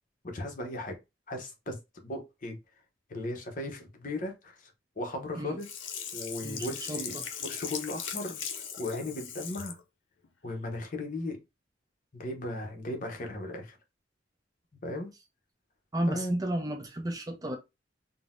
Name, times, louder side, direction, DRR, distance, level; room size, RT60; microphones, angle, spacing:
voice 1, 0.2-1.0 1.3-2.6 3.1-5.7 6.1-7.1 7.4-8.4 8.8-9.8 10.4-11.4 12.1-13.8 14.8-15.1 16.1-16.3, left 2 dB, 45° left, 0.7 m, -36 dB
Sink (filling or washing), 5.6-9.8 10.2-10.3, left 7 dB, 85° left, 0.6 m, -39 dB
voice 2, 6.4-7.3 15.9-17.6, right 1 dB, 20° right, 0.5 m, -32 dB
3.7 x 2.0 x 2.4 m
head